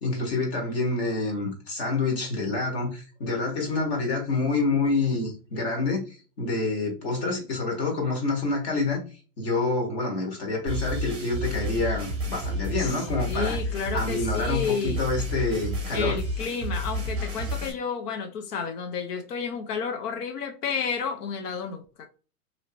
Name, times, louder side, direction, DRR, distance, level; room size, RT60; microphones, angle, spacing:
voice 1, 0.0-9.0 9.4-13.6 13.9-16.2, left 3 dB, 40° left, 1.5 m, -27 dB
sound 1, 10.7-17.7, equal, 10° right, 0.8 m, -30 dB
voice 2, 12.8-15.0 15.9-22.1, left 6 dB, 80° left, 0.8 m, -31 dB
3.0 x 2.8 x 2.8 m
hypercardioid pair, 155°, 46 cm